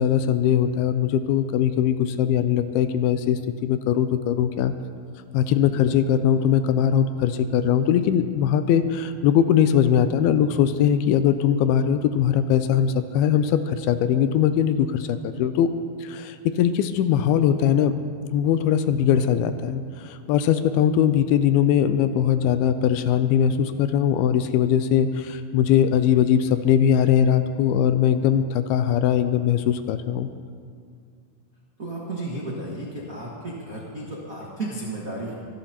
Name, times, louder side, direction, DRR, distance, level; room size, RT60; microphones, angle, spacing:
voice 1, 0.0-4.7 5.3-15.7 16.0-18.0 18.3-30.3, left 9 dB, 80° left, 10 dB, 2.4 m, -21 dB
voice 2, 31.8-35.3, right 2 dB, 85° right, -4 dB, 0.7 m, -33 dB
24.5 x 12.0 x 2.9 m, 2.1 s
omnidirectional pair, 4.6 m